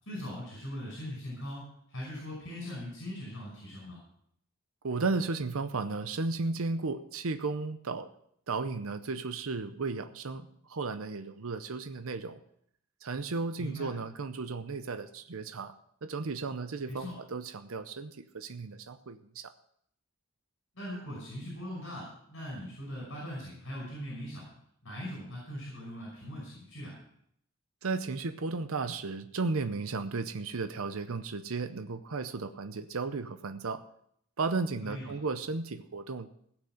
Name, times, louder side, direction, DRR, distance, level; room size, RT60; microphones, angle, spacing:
voice 1, 0.0-4.0 13.6-13.9 16.9-17.1 20.7-24.5 24.8-27.0 34.8-35.1, equal, 60° left, -3 dB, 5.4 m, -40 dB
voice 2, 4.8-8.1 8.5-12.4 13.0-15.7 16.0-19.5 27.8-33.8 34.4-36.3, right 3 dB, 70° right, 10 dB, 0.7 m, -34 dB
17.0 x 6.0 x 7.8 m, 0.70 s
head